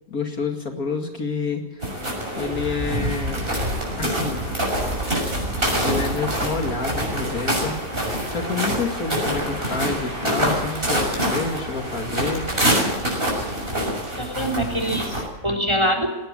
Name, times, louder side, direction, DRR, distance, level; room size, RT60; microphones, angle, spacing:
voice 1, 0.1-1.8 2.4-3.5 4.0-4.5 5.8-12.5, left 4 dB, 55° left, 3 dB, 2.6 m, -28 dB
sound 1, 1.8-15.3, right 1 dB, 30° right, 6.6 m, -25 dB
voice 2, 14.2-16.2, equal, 15° right, 3 dB, 3.8 m, -24 dB
19.5 x 18.5 x 8.9 m, 1.0 s
omnidirectional pair, 1.8 m